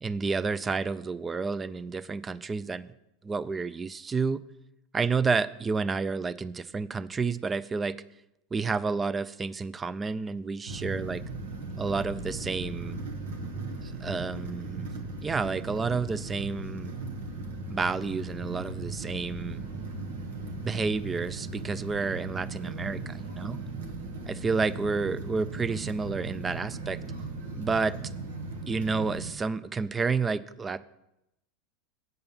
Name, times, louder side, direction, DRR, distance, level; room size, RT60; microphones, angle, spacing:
voice 1, 0.0-2.9 3.2-4.4 4.9-8.0 8.5-11.2 11.8-13.0 13.8-14.9 15.2-17.0 17.7-19.7 20.6-23.6 24.3-27.0 27.5-28.0 28.7-30.8, right 4 dB, 20° right, 17 dB, 0.4 m, -30 dB
sound 1, 10.7-29.3, right 3 dB, 90° right, 1.2 m, -37 dB
7.9 x 5.4 x 7.0 m, 0.86 s
supercardioid pair, 125°, 0 cm